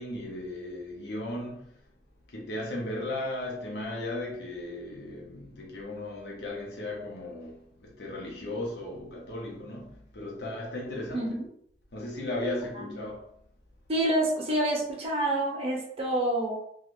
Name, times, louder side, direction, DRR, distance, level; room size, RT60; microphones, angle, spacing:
voice 1, 0.0-1.7 2.3-11.3 11.9-13.3, left 1 dB, 65° left, 0.7 m, -36 dB
voice 2, 11.1-11.5 12.8-13.0 13.9-16.6, right 1 dB, 35° right, 0.7 m, -28 dB
2.5 x 2.3 x 3.0 m
head